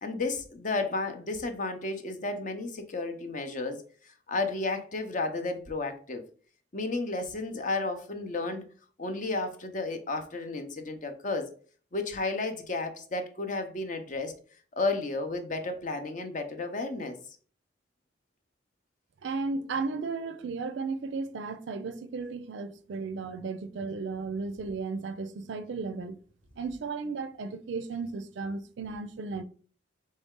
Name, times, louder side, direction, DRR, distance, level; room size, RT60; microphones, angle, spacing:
voice 1, 0.0-3.8 4.3-6.2 6.7-8.7 9.0-11.5 11.9-14.3 14.7-17.2, left 3 dB, 45° left, 0.6 m, -32 dB
voice 2, 19.2-26.2 26.6-29.4, right 4 dB, 75° right, 0.4 m, -34 dB
4.1 x 3.2 x 3.6 m
head